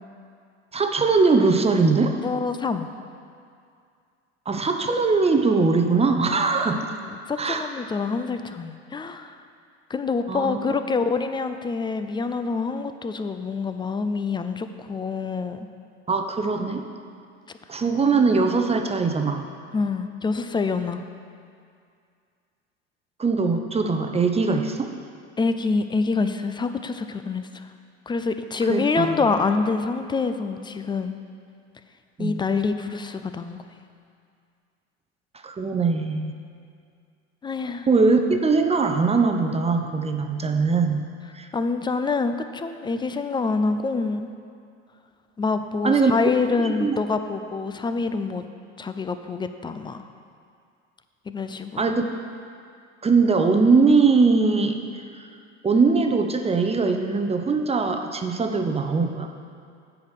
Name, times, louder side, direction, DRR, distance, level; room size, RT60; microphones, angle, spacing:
voice 1, 0.7-2.1 4.5-6.9 7.4-7.7 10.3-10.7 16.1-16.8 17.7-19.4 23.2-24.9 28.7-29.3 32.2-32.5 35.4-36.3 37.9-41.0 41.3-41.5 45.8-46.1 46.6-47.0 51.8-52.0 53.0-54.8 55.1-55.2 55.6-59.3, right 4 dB, 20° right, 5 dB, 0.7 m, -21 dB
voice 2, 2.2-2.9 7.3-9.4 9.9-15.7 19.7-21.0 25.4-27.7 28.1-31.1 32.2-33.6 37.4-37.9 41.5-44.3 45.4-48.4 48.8-50.0 51.3-51.8, left 4 dB, 15° left, 9 dB, 0.3 m, -26 dB
8.2 x 4.9 x 6.5 m, 2.3 s
hypercardioid pair, 80°, 35 cm